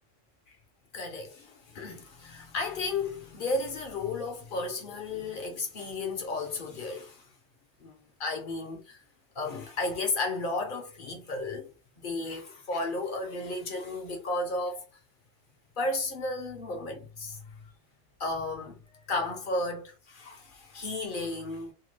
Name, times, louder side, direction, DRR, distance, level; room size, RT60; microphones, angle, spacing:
voice 1, 0.9-7.3 7.8-9.0 9.3-11.7 12.0-14.8 15.8-17.5 18.2-18.8 19.1-21.7, left 2 dB, 50° left, 0.8 m, -33 dB
2.9 x 2.3 x 3.2 m
omnidirectional pair, 1.3 m